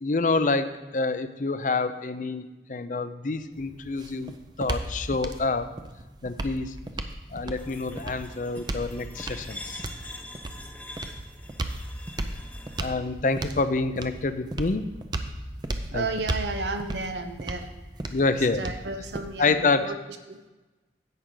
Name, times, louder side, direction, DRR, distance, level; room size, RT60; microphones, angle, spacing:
voice 1, 0.0-5.7 6.2-6.8 7.3-9.8 12.8-14.8 15.9-16.1 18.1-18.6 19.4-19.9, left 3 dB, 45° left, 11 dB, 0.5 m, -27 dB
sound 1, 3.5-19.6, right 2 dB, 25° right, 0.5 m, -36 dB
sound 2, 7.6-12.9, left 1 dB, 10° left, 0.8 m, -44 dB
voice 2, 15.9-17.7 18.3-20.5, right 3 dB, 85° right, 7 dB, 0.9 m, -33 dB
11.0 x 8.3 x 3.8 m, 1.1 s
head